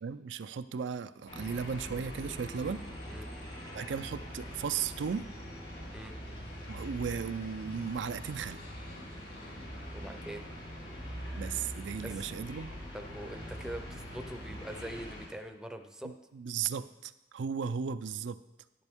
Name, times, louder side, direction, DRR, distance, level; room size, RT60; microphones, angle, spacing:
voice 1, 0.0-2.9 3.7-5.3 6.7-8.6 11.4-12.7 16.0-18.4, right 6 dB, 85° right, 12 dB, 0.4 m, -36 dB
sound 1, 1.3-15.3, equal, 90° left, 4.0 m, -43 dB
sound 2, 2.1-11.2, left 1 dB, 55° left, 2.2 m, -55 dB
voice 2, 9.9-10.5 12.0-12.3 12.9-16.1, right 1 dB, 5° right, 6 dB, 0.6 m, -43 dB
11.0 x 10.5 x 3.6 m, 1.0 s
head